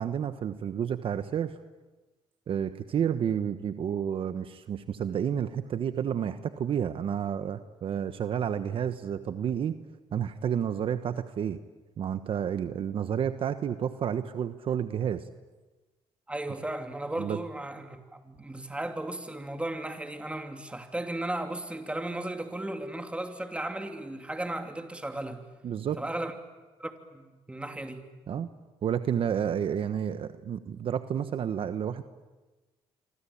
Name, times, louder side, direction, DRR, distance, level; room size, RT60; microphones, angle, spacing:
voice 1, 0.0-1.6 2.5-9.8 10.1-11.6 12.0-15.2 17.2-17.4 25.6-26.0 28.3-28.5 28.8-32.0, right 8 dB, 55° right, 1.2 m, -30 dB
voice 2, 16.3-25.5 26.0-26.3 26.8-28.1, right 1 dB, 10° right, 3.0 m, -35 dB
27.0 x 25.0 x 8.7 m
cardioid pair, 95°, 11 cm